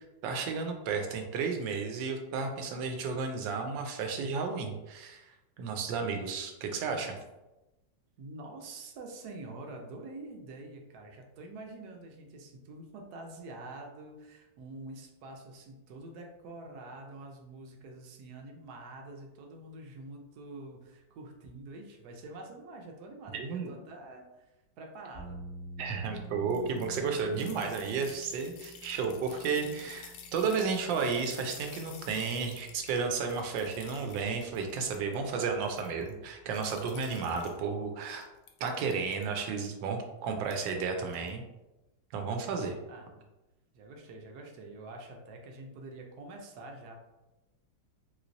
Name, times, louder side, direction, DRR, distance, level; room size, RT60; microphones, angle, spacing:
voice 1, 0.2-5.2 5.6-7.2 23.3-23.7 25.8-38.2 38.6-41.4 42.1-42.7, right 5 dB, 90° right, 4 dB, 1.3 m, -33 dB
voice 2, 8.2-24.5 24.8-25.4 42.9-43.3 43.7-46.9, right 2 dB, 70° right, 2 dB, 1.1 m, -46 dB
sound 1, 25.1-37.6, equal, 45° right, 0.7 m, -51 dB
sound 2, 26.5-35.2 35.5-36.1 36.5-37.6 38.0-39.2 40.4-40.8 41.1-41.3, left 7 dB, 85° left, 1.3 m, -51 dB
3.1 x 3.1 x 2.5 m, 1.0 s
omnidirectional pair, 2.0 m